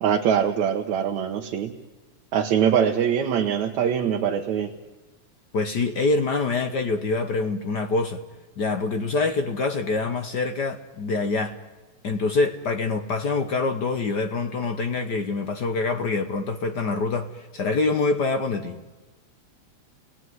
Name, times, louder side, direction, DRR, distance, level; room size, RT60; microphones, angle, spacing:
voice 1, 0.0-1.7 2.3-4.7, right 8 dB, 75° right, 2.5 m, -23 dB
voice 2, 5.5-8.2 8.6-11.6 12.0-18.8, left 3 dB, 55° left, 1.1 m, -25 dB
30.0 x 19.0 x 9.5 m
omnidirectional pair, 3.3 m